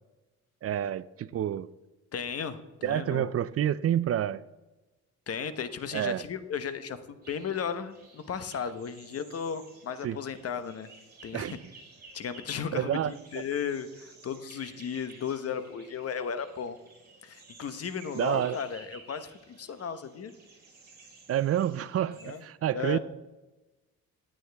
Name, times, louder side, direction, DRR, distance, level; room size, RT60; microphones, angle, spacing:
voice 1, 0.6-1.7 2.8-4.4 5.9-6.2 10.0-10.2 11.3-11.6 12.7-13.1 18.2-18.6 21.3-23.0, right 11 dB, 50° right, 0.5 m, -28 dB
voice 2, 2.1-3.3 5.3-10.9 11.2-11.6 12.1-16.8 17.2-20.3 22.2-22.4 22.7-23.0, left 7 dB, 50° left, 1.1 m, -35 dB
sound 1, 7.2-22.4, right 3 dB, 30° right, 4.7 m, -54 dB
16.0 x 8.9 x 3.4 m
cardioid pair, 90°, 30 cm